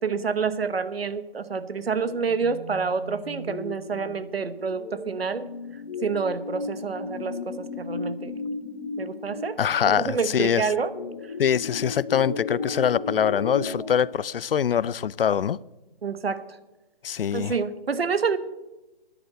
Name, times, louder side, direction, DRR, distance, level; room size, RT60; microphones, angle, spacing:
voice 1, 0.0-5.5 6.0-8.3 9.0-9.6 10.0-10.9 16.0-16.4 17.3-18.4, right 5 dB, 85° right, 1.1 m, -28 dB
sound 1, 1.7-13.9, left 3 dB, 20° left, 2.5 m, -35 dB
voice 2, 9.6-10.7 11.4-15.6 17.0-17.5, left 8 dB, 70° left, 0.4 m, -24 dB
10.5 x 8.2 x 7.8 m
hypercardioid pair, 170°, 29 cm